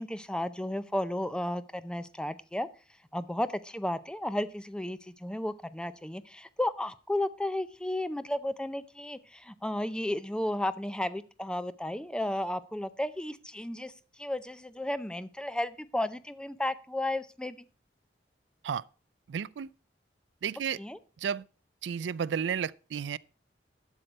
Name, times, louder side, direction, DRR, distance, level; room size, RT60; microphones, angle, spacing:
voice 1, 0.0-2.7 3.1-13.9 14.2-17.6 20.8-21.0, left 1 dB, 5° left, 0.5 m, -33 dB
voice 2, 19.3-19.7 20.4-20.8 21.2-21.4 21.8-23.2, right 7 dB, 85° right, 0.4 m, -32 dB
12.0 x 6.5 x 4.5 m
head